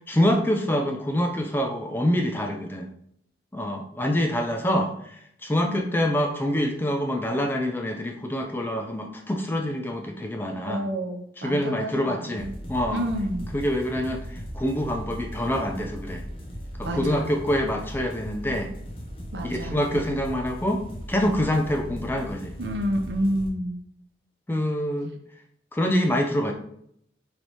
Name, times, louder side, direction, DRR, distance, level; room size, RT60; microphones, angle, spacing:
voice 1, 0.0-2.9 3.5-5.2 5.4-10.9 11.4-13.0 13.5-16.2 16.9-18.7 19.4-20.8 21.1-22.5 24.5-25.1 25.7-26.5, equal, 10° left, 4 dB, 0.3 m, -26 dB
voice 2, 5.6-6.1 10.7-12.5 12.9-13.5 16.8-17.4 19.3-19.8 22.6-23.8, equal, 75° right, 3 dB, 0.7 m, -29 dB
sound 1, 12.4-23.5, equal, 30° left, 0.7 m, -38 dB
4.0 x 3.2 x 3.1 m, 0.70 s
head